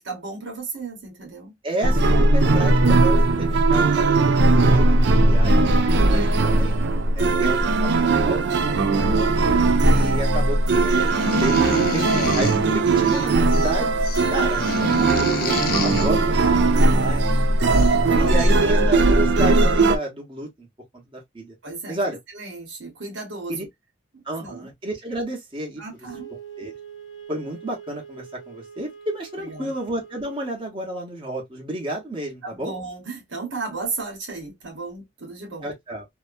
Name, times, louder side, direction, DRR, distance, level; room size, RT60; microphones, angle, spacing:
voice 1, 0.0-1.5 8.7-9.1 16.1-16.7 18.1-18.6 21.6-23.7 24.1-24.7 25.8-26.3 29.4-29.7 32.4-35.7, right 4 dB, 85° right, 1.1 m, -34 dB
voice 2, 1.6-5.6 6.1-6.8 7.2-8.8 9.1-9.3 9.8-13.9 14.3-17.8 18.1-20.7 21.1-21.5 21.9-22.2 23.5-23.6 24.2-25.8 26.6-26.7 27.3-32.7 35.6-36.1, right 1 dB, 30° right, 1.0 m, -31 dB
sound 1, 1.8-20.0, right 2 dB, 65° right, 0.4 m, -18 dB
sound 2, 11.0-12.6 13.0-13.7 14.0-16.1 17.3-17.4 17.7-18.0, left 5 dB, 55° left, 0.4 m, -29 dB
Wind instrument woodwind instrument, 26.1-30.5, right 7 dB, 85° left, 0.8 m, -43 dB
2.7 x 2.2 x 2.4 m
head